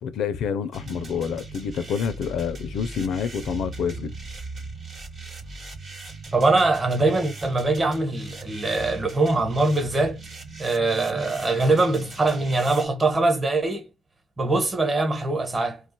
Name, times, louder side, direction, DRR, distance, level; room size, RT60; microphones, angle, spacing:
voice 1, 0.0-4.1, left 7 dB, 75° left, 0.4 m, -28 dB
sound 1, 0.7-12.9, right 2 dB, 50° right, 1.0 m, -39 dB
voice 2, 6.3-10.2 10.6-13.9 14.4-15.8, right 2 dB, 30° right, 1.1 m, -22 dB
2.4 x 2.3 x 3.8 m
cardioid pair, 90°, 0 cm